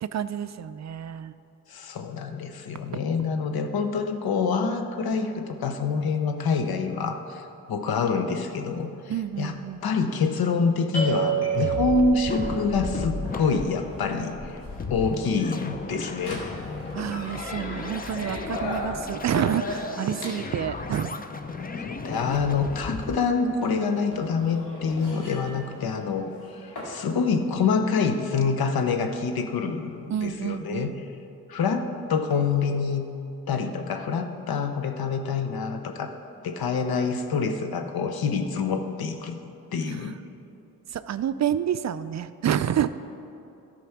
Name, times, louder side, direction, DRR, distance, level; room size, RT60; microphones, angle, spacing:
voice 1, 0.0-1.3 9.1-9.8 16.9-21.2 30.1-31.0 39.9-40.1 40.9-42.9, right 9 dB, 45° right, 13 dB, 0.4 m, -29 dB
voice 2, 1.7-7.4 7.7-8.9 9.4-9.5 9.8-14.6 14.9-16.4 21.7-26.3 26.6-30.9 31.5-33.1 33.5-36.1 36.4-39.4 39.7-40.2, left 5 dB, 70° left, 7 dB, 0.9 m, -26 dB
sound 1, 10.9-26.9, right 4 dB, 85° left, 2.2 m, -34 dB
sound 2, 11.5-23.2, left 4 dB, 25° left, 0.6 m, -35 dB
12.5 x 5.1 x 5.9 m, 2.7 s
supercardioid pair, 55°, 38 cm